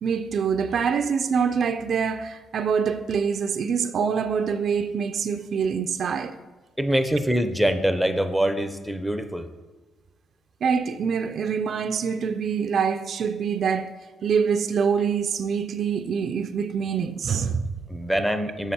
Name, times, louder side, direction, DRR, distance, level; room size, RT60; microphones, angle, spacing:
voice 1, 0.0-6.3 10.6-13.9 14.2-17.8, right 6 dB, 60° right, 0.4 m, -25 dB
voice 2, 6.8-9.5 17.9-18.7, equal, ahead, 0.5 m, -24 dB
5.9 x 5.7 x 4.2 m
cardioid pair, 90°, 0 cm